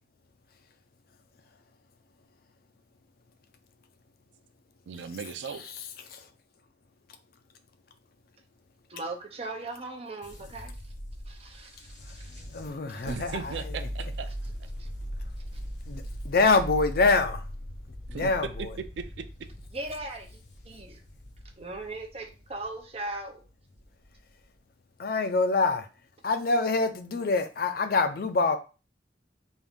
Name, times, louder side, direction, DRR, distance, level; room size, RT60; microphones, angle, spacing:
voice 1, 4.9-5.7 13.0-14.3 18.1-18.5 18.8-19.3, right 6 dB, 80° right, 0.4 m, -37 dB
voice 2, 8.9-10.9 11.2-12.5 12.9-13.1 14.8-14.9 19.7-21.0 21.6-23.4, right 2 dB, 35° right, 0.6 m, -39 dB
sound 1, 10.2-24.4, equal, 75° left, 0.8 m, -40 dB
voice 3, 12.5-13.5 15.9-17.4 18.1-18.7 25.0-25.9 26.2-28.6, left 3 dB, 55° left, 0.4 m, -25 dB
3.6 x 2.6 x 3.5 m
head